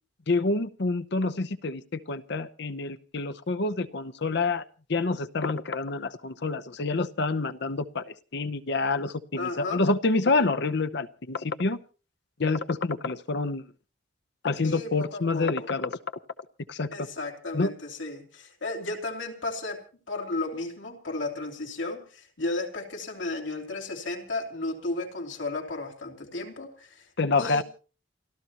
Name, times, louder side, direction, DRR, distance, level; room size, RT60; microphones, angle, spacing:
voice 1, 0.3-4.6 4.9-11.8 12.4-13.6 14.4-16.0 16.7-16.9 17.5-17.7 27.2-27.6, left 3 dB, 65° left, 0.8 m, -27 dB
voice 2, 9.4-9.8 14.6-15.7 16.9-19.8 20.1-27.0 27.4-27.6, left 2 dB, 80° left, 3.3 m, -34 dB
29.5 x 13.5 x 3.0 m
head